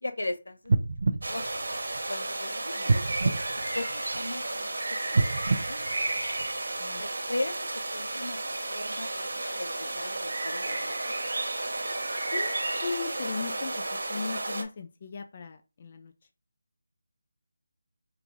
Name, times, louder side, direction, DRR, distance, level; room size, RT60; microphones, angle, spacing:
voice 1, 0.0-1.4 2.1-3.4 3.7-5.9 7.0-8.4 8.7-11.2, left 2 dB, 85° left, 8 dB, 0.8 m, -38 dB
sound 1, 0.7-2.3 2.8-4.4 5.1-6.8 7.3-7.4, right 3 dB, 45° right, 0.4 m, -28 dB
sound 2, 1.2-14.6, right 2 dB, 70° right, 1.1 m, -32 dB
voice 2, 12.3-16.1, left 4 dB, 30° left, 6 dB, 0.3 m, -37 dB
4.8 x 2.5 x 3.5 m, 0.29 s
figure-of-eight pair, 175°, 0 cm